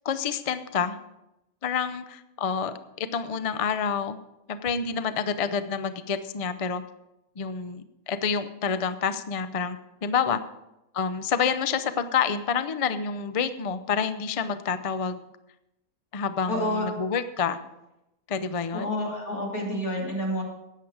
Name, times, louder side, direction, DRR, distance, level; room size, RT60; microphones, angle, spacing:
voice 1, 0.0-1.0 1.6-4.2 4.5-6.8 7.4-9.8 10.0-10.4 10.9-15.2 16.1-17.6 18.3-18.9, left 6 dB, 45° left, 11 dB, 0.4 m, -28 dB
voice 2, 16.5-16.9 18.7-20.4, left 1 dB, 85° left, -2 dB, 3.5 m, -29 dB
13.5 x 9.3 x 4.8 m, 0.90 s
omnidirectional pair, 1.5 m